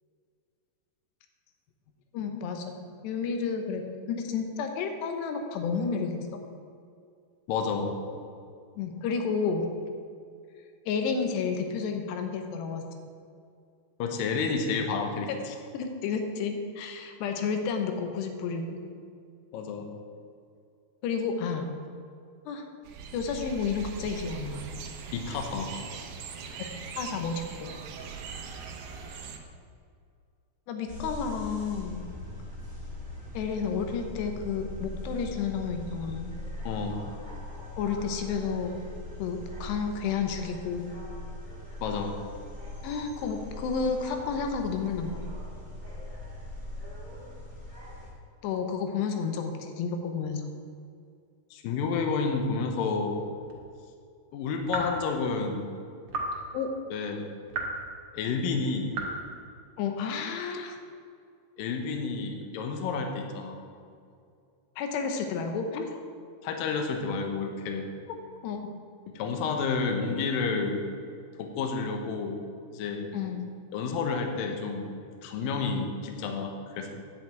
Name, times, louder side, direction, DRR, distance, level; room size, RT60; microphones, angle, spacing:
voice 1, 2.1-6.4 8.8-9.7 10.9-12.9 15.3-15.4 15.7-18.8 21.0-21.7 22.5-22.7 23.1-24.6 26.6-26.7 27.0-27.7 30.7-32.1 33.3-36.3 37.8-38.8 39.2-40.9 42.8-45.2 48.4-50.4 56.5-56.7 59.8-60.8 64.8-66.0 68.4-68.8 73.1-73.5, left 5 dB, 85° left, 5 dB, 3.1 m, -31 dB
voice 2, 7.5-8.0 14.0-15.5 19.5-19.9 25.1-25.7 36.6-37.1 41.8-42.1 51.5-53.2 54.3-55.8 56.9-57.3 58.1-58.9 61.6-63.6 66.4-67.9 69.1-70.9 71.4-72.4 72.7-73.1 73.7-76.9, left 4 dB, 70° left, 4 dB, 2.6 m, -30 dB
sound 1, 22.8-29.4, right 5 dB, 70° right, 1.9 m, -41 dB
sound 2, 30.9-48.1, left 1 dB, 30° left, 0.9 m, -41 dB
sound 3, 53.4-53.6 54.7-55.0 56.1-56.4 57.5-57.9 58.9-59.2, right 3 dB, 50° right, 2.5 m, -33 dB
10.5 x 6.6 x 8.8 m, 2.4 s
omnidirectional pair, 4.8 m